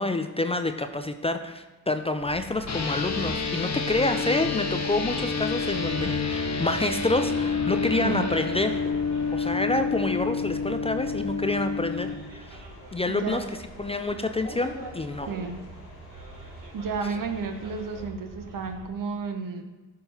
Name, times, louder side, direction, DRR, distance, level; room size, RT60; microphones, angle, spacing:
voice 1, 0.0-8.8 9.3-12.6 12.9-13.4 13.8-15.3, left 2 dB, 15° left, 8 dB, 0.3 m, -28 dB
Bus, 2.2-18.9, right 2 dB, 90° right, 1.1 m, -43 dB
sound 1, 2.7-12.1, left 5 dB, 40° left, 1.0 m, -29 dB
sound 2, 4.0-18.0, left 1 dB, 85° left, 1.5 m, -51 dB
voice 2, 13.1-13.4 15.3-15.5 16.7-19.6, right 5 dB, 55° right, 6 dB, 0.8 m, -32 dB
11.0 x 3.8 x 2.8 m, 1.1 s
supercardioid pair, 55°, 39 cm